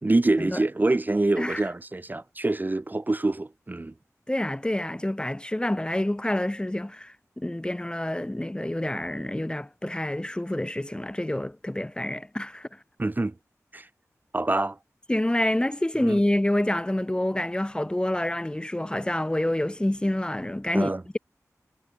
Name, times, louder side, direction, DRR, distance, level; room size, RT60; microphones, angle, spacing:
voice 1, 0.0-3.9 13.0-13.3 13.7-13.9 14.3-14.8 16.0-16.2 20.7-21.0, right 2 dB, 30° right, 0.7 m, -25 dB
voice 2, 4.3-12.8 15.1-21.2, left 1 dB, 15° left, 0.8 m, -27 dB
wide cardioid pair, 55°, 6 cm